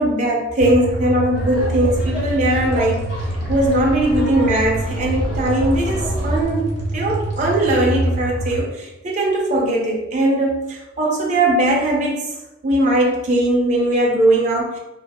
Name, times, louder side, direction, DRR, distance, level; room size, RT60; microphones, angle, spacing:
voice 1, 0.0-3.0 3.5-12.3 12.6-14.8, right 1 dB, 35° right, -2 dB, 0.4 m, -19 dB
sound 1, 0.6-8.6, right 1 dB, 55° right, 0.9 m, -25 dB
Laughter, 1.3-6.4, equal, 35° left, 1.1 m, -30 dB
2.6 x 2.5 x 2.2 m, 0.98 s
head